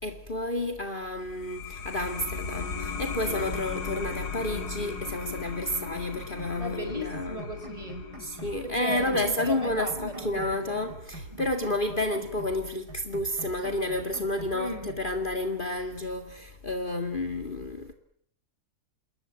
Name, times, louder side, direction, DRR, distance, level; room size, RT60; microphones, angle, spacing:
voice 1, 0.0-7.4 8.2-17.9, left 1 dB, 30° left, 2.3 m, -31 dB
sound 1, 1.2-12.4, left 5 dB, 80° left, 3.0 m, -38 dB
sound 2, 6.2-6.6 6.9-8.6 8.9-10.6 10.9-12.6 12.9-14.6 14.9-15.0, right 3 dB, 85° right, 3.3 m, -45 dB
voice 2, 6.6-8.1 8.6-10.9 11.3-11.4 14.5-14.9, equal, 20° right, 5.3 m, -36 dB
27.5 x 22.0 x 9.0 m
omnidirectional pair, 1.7 m